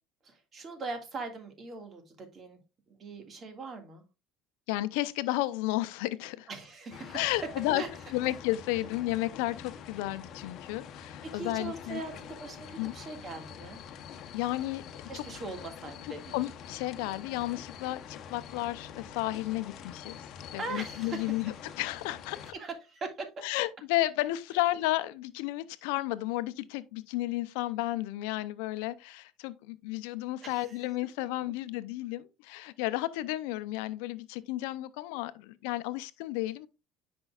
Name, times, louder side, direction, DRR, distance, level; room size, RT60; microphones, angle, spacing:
voice 1, 0.2-2.6 2.9-4.0 6.5-7.4 7.7-7.9 11.2-13.8 15.1-16.4 20.6-21.5 22.4-23.3 30.4-30.8, right 3 dB, 35° right, 1.9 m, -41 dB
voice 2, 4.7-6.5 7.1-7.8 8.1-12.0 12.8-12.9 14.3-14.8 15.1-15.2 16.3-20.2 20.5-22.4 23.4-36.7, left 17 dB, 85° left, 0.6 m, -32 dB
sound 1, 6.9-22.5, left 8 dB, 55° left, 0.9 m, -46 dB
9.7 x 5.2 x 2.4 m
supercardioid pair, 110°, 0 cm